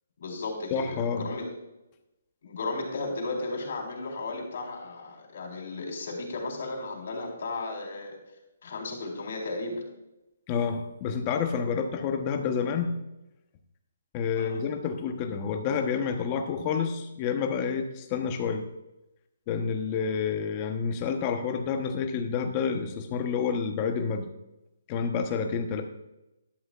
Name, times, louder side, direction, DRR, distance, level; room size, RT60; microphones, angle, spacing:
voice 1, 0.2-1.5 2.4-8.2 8.6-9.8 14.4-14.6, left 3 dB, 55° left, -1 dB, 4.0 m, -35 dB
voice 2, 0.7-1.2 10.5-13.0 14.1-18.7 19.5-24.3 24.9-25.8, left 6 dB, 20° left, 5 dB, 1.0 m, -29 dB
12.5 x 12.0 x 2.5 m, 0.95 s
hypercardioid pair, 170°, 0 cm